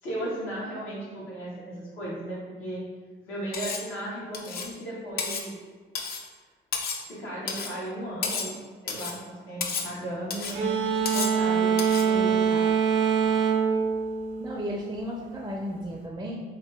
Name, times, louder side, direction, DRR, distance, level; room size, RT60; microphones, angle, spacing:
voice 1, 0.0-2.8 3.3-5.5 7.1-11.8 12.0-12.6, right 1 dB, 85° left, -8 dB, 1.3 m, -36 dB
Cutlery silverware, 3.5-3.9 4.3-4.7 5.2-5.5 5.9-6.3 6.7-7.1 7.5-7.8 8.2-8.6 8.9-9.2 9.6-9.9 10.3-10.6 11.1-11.4 11.8-12.1, left 5 dB, 50° left, 0.4 m, -32 dB
sound 1, 10.5-15.0, right 7 dB, 80° right, 0.5 m, -24 dB
voice 2, 14.4-16.4, equal, 20° right, -2 dB, 0.4 m, -34 dB
2.8 x 2.4 x 3.3 m, 1.5 s
cardioid pair, 90°, 20 cm